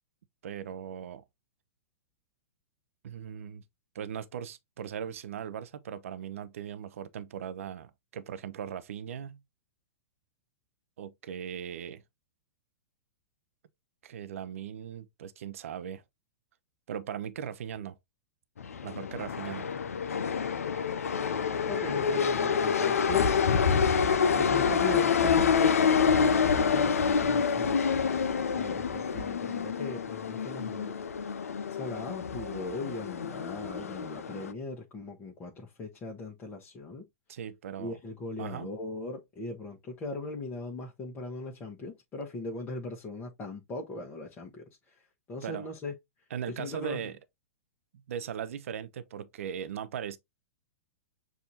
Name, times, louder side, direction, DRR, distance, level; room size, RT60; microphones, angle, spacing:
voice 1, 0.4-1.2 3.0-3.6 3.9-9.4 11.0-12.0 14.0-16.0 16.9-18.0 18.8-19.7 37.3-37.9 38.4-38.7 45.4-45.7 46.3-47.2 47.9-50.2, right 8 dB, 65° right, 0.6 m, -39 dB
sound 1, 18.6-34.5, left 6 dB, 80° left, 0.5 m, -27 dB
voice 2, 21.7-23.3 24.3-28.3 28.5-30.9 31.7-37.1 37.8-45.9 46.5-47.1, left 2 dB, 25° left, 1.1 m, -39 dB
7.1 x 2.7 x 2.8 m
hypercardioid pair, 110°, 8 cm